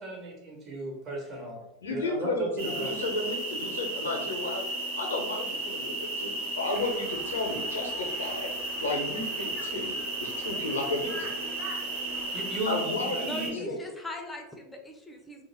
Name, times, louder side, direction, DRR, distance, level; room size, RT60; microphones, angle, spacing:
voice 1, 0.0-1.6 1.9-2.9 12.3-13.3 13.6-13.7, right 1 dB, 40° right, -2 dB, 1.1 m, -36 dB
voice 2, 1.8-4.6 5.0-8.5 8.8-11.3 12.7-13.8, left 2 dB, 90° left, 1 dB, 0.6 m, -33 dB
sound 1, 2.6-13.5, right 2 dB, 80° right, 1.3 m, -34 dB
Conversation, 6.7-12.7, right 1 dB, 20° right, 0.8 m, -47 dB
voice 3, 13.2-15.5, left 1 dB, 10° left, 2 dB, 0.5 m, -39 dB
2.3 x 2.1 x 3.3 m, 0.96 s
hypercardioid pair, 95°, 0 cm